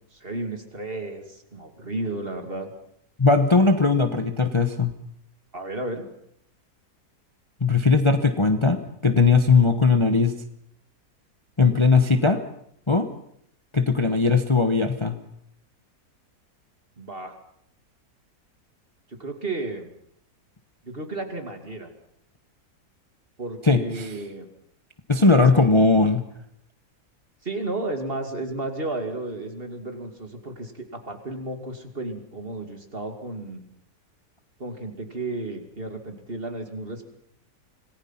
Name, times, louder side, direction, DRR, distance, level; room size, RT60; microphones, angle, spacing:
voice 1, 0.1-2.7 5.5-6.0 17.0-17.3 19.1-19.9 20.8-21.9 23.4-24.5 25.2-25.7 27.4-33.6 34.6-37.1, right 2 dB, 35° right, 5 dB, 2.8 m, -33 dB
voice 2, 3.2-4.9 7.6-10.3 11.6-12.4 12.9-13.1 13.7-15.2 23.6-24.1 25.1-26.2, left 4 dB, 20° left, 7 dB, 1.0 m, -19 dB
26.5 x 19.5 x 5.9 m, 0.70 s
omnidirectional pair, 1.7 m